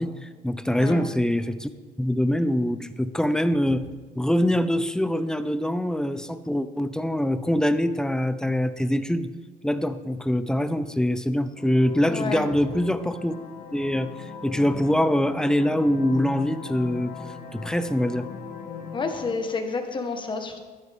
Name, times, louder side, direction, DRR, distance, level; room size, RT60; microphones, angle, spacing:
voice 1, 0.0-1.7 2.0-3.9 4.2-9.3 9.6-13.3 13.7-17.2 17.5-18.3, equal, 5° left, 11 dB, 0.6 m, -24 dB
voice 2, 0.8-1.1 12.1-12.5 18.9-20.6, left 4 dB, 30° left, 5 dB, 1.5 m, -29 dB
sound 1, 11.5-19.3, left 6 dB, 65° left, 1.6 m, -39 dB
14.0 x 10.5 x 3.7 m, 1.4 s
cardioid pair, 110°, 17 cm